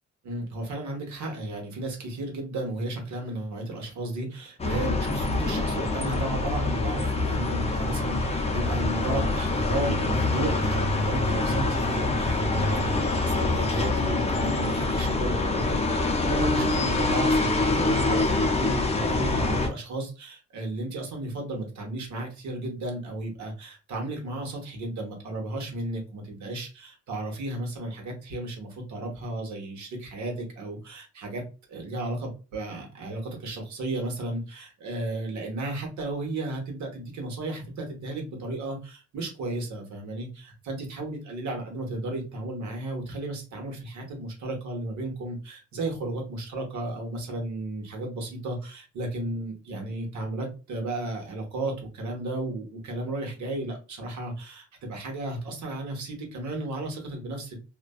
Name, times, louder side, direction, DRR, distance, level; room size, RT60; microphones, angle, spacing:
voice 1, 0.2-31.4 31.7-57.6, right 2 dB, 70° right, 1 dB, 1.1 m, -34 dB
sound 1, 4.6-19.7, left 2 dB, 20° left, 0.5 m, -25 dB
2.5 x 2.2 x 2.3 m, 0.32 s
cardioid pair, 90°, 30 cm